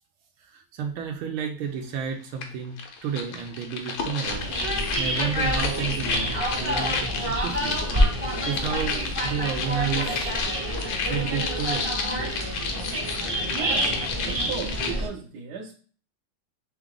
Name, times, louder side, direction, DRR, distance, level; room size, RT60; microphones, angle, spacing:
voice 1, 0.4-7.8 8.4-10.3 11.0-11.9, right 7 dB, 85° right, 3 dB, 1.5 m, -31 dB
sound 1, 2.4-2.5 2.8-15.0, left 5 dB, 75° left, 1.5 m, -32 dB
sound 2, 4.3-15.1, equal, 25° right, 0.8 m, -28 dB
voice 2, 13.5-13.9 14.2-15.7, right 7 dB, 60° right, 1 dB, 1.2 m, -35 dB
3.8 x 3.5 x 3.7 m, 0.41 s
omnidirectional pair, 2.3 m